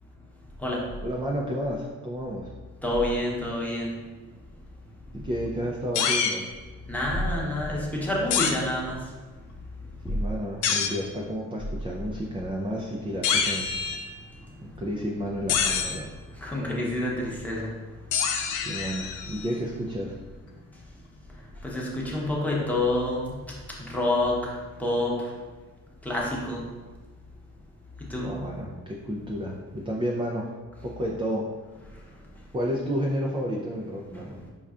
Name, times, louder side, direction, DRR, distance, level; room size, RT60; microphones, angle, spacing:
voice 1, 1.0-2.5 5.1-6.5 10.0-13.8 14.6-16.1 18.6-20.2 28.2-30.5 30.8-31.5 32.5-34.4, equal, 15° right, -2 dB, 0.4 m, -31 dB
voice 2, 2.8-3.9 6.9-9.0 16.4-17.7 21.6-23.2 23.9-24.4 24.8-25.2 26.0-26.6 28.1-28.3, left 1 dB, 5° left, -4 dB, 0.9 m, -27 dB
sound 1, 5.9-6.4 8.3-8.5 10.6-11.0 13.2-14.2 15.5-16.0 18.1-19.5, left 6 dB, 85° left, 0.5 m, -26 dB
5.4 x 2.3 x 2.4 m, 1.3 s
cardioid pair, 90°, 30 cm